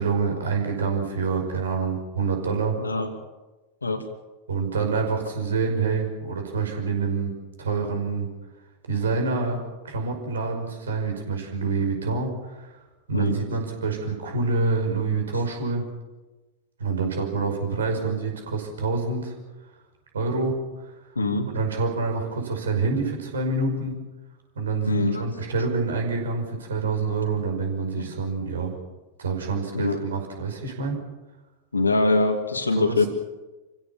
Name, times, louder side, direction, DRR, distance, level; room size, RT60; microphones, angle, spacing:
voice 1, 0.0-2.7 4.5-7.3 7.6-8.3 8.9-9.6 9.8-12.7 13.1-15.8 16.8-19.3 20.1-20.6 21.5-23.9 24.6-28.7 29.2-31.0 32.8-33.0, right 4 dB, 70° right, 3 dB, 5.5 m, -26 dB
voice 2, 2.8-3.1 3.8-4.0 13.1-13.4 21.2-21.5 24.9-25.4 28.0-28.1 29.7-30.0 31.7-33.1, left 3 dB, 80° left, 6 dB, 2.6 m, -23 dB
28.0 x 16.0 x 7.2 m, 1.1 s
figure-of-eight pair, 90°, 0 cm